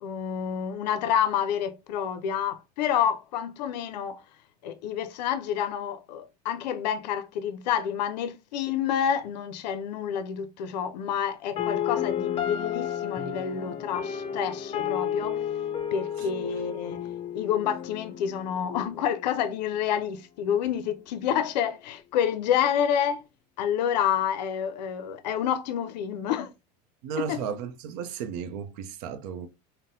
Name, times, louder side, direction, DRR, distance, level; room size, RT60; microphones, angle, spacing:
voice 1, 0.0-4.2 4.6-15.4 15.9-17.0 17.3-23.2 23.6-26.5 27.2-27.4, left 9 dB, 85° left, 0.4 m, -28 dB
sound 1, 11.6-19.6, left 9 dB, 25° left, 0.5 m, -32 dB
voice 2, 27.0-29.5, right 7 dB, 70° right, 0.6 m, -34 dB
3.9 x 2.0 x 2.6 m
supercardioid pair, 105°, 21 cm